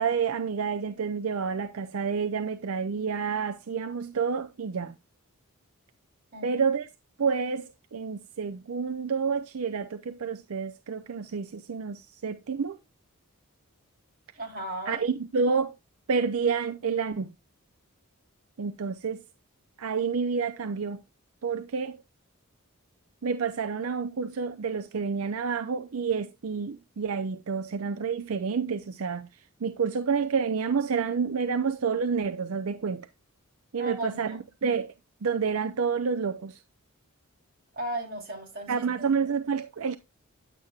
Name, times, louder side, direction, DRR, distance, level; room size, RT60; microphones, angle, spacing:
voice 1, 0.0-5.0 6.4-6.9 7.2-12.8 14.9-15.7 16.1-17.3 18.6-19.2 19.8-21.0 21.4-22.0 23.2-29.3 29.6-33.1 33.7-34.9 35.2-36.6 38.7-40.0, right 5 dB, 75° right, 0.5 m, -29 dB
voice 2, 14.3-15.0 33.8-34.4 37.7-39.1, right 1 dB, 40° right, 3.2 m, -35 dB
9.8 x 8.1 x 2.4 m
head